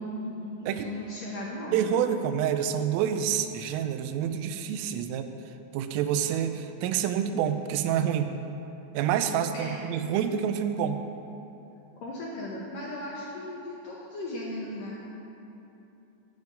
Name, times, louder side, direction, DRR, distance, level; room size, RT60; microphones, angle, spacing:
voice 1, 0.0-1.8 9.5-9.8 12.0-15.0, left 1 dB, 65° left, -5 dB, 2.3 m, -36 dB
voice 2, 1.7-5.3 5.7-8.3 8.9-11.0, right 9 dB, 85° right, 8 dB, 3.3 m, -27 dB
10.5 x 8.9 x 9.4 m, 2.9 s
omnidirectional pair, 5.8 m